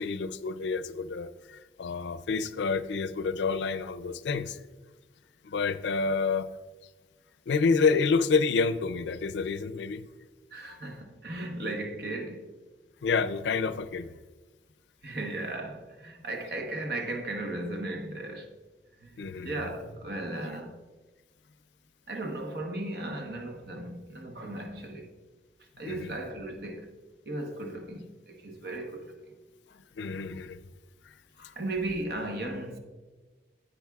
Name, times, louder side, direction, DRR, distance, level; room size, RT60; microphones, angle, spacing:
voice 1, 0.0-4.6 5.4-6.5 7.5-10.1 13.0-14.1 19.2-19.6 25.8-26.1 30.0-30.6 31.4-31.5, left 4 dB, 90° left, 0.4 m, -28 dB
voice 2, 10.5-12.5 15.0-18.5 19.0-20.8 22.1-25.1 25.8-27.0 27.3-29.2 31.4-32.8, right 2 dB, 65° right, 1.0 m, -36 dB
10.5 x 8.7 x 2.3 m
head